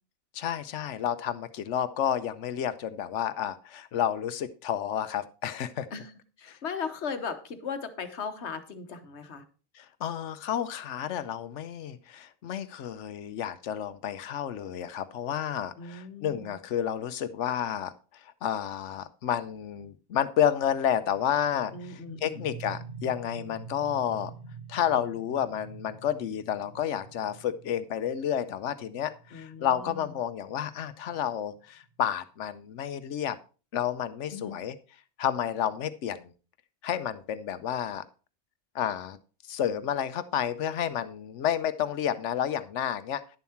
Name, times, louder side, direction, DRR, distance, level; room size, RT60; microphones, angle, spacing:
voice 1, 0.3-5.9 6.5-6.6 9.8-17.9 18.2-24.3 24.7-33.4 33.7-34.7 35.2-36.3 36.8-38.1 38.7-39.2 39.5-43.2, left 9 dB, 90° left, 13 dB, 1.1 m, -30 dB
voice 2, 6.4-9.4 15.8-16.6 21.7-22.5 29.3-30.1 34.3-34.6, left 5 dB, 70° left, 9 dB, 1.4 m, -38 dB
sound 1, 20.6-32.0, right 4 dB, 55° right, 3.9 m, -47 dB
10.5 x 7.1 x 4.3 m, 0.36 s
omnidirectional pair, 1.2 m